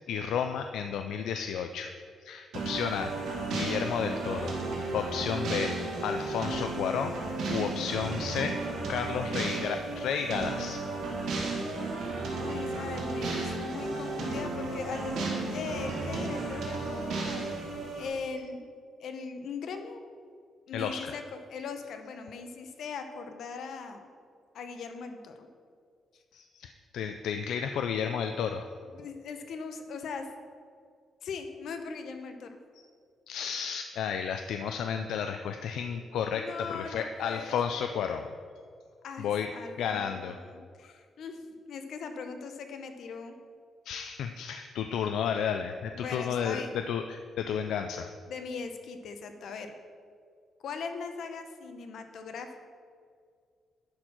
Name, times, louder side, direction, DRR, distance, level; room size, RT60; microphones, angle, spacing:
voice 1, 0.1-1.9 2.2-4.5 4.9-5.7 6.0-7.2 7.5-8.6 8.9-10.8 16.8-16.9 20.7-21.1 26.3-28.7 32.7-32.8 33.3-38.2 39.2-39.5 39.8-40.4 43.9-48.1, left 7 dB, 85° left, 6 dB, 0.4 m, -32 dB
sound 1, 2.5-18.1, right 3 dB, 85° right, 2.1 m, -34 dB
voice 2, 12.4-17.5 18.0-18.7 19.0-20.0 20.7-24.1 24.5-25.5 26.1-26.2 28.9-30.3 31.2-32.6 36.3-38.2 39.0-43.4 45.9-46.8 48.3-49.7 50.6-52.6, left 5 dB, 70° left, 6 dB, 0.9 m, -40 dB
11.0 x 4.4 x 6.0 m, 2.1 s
cardioid pair, 135°, 0 cm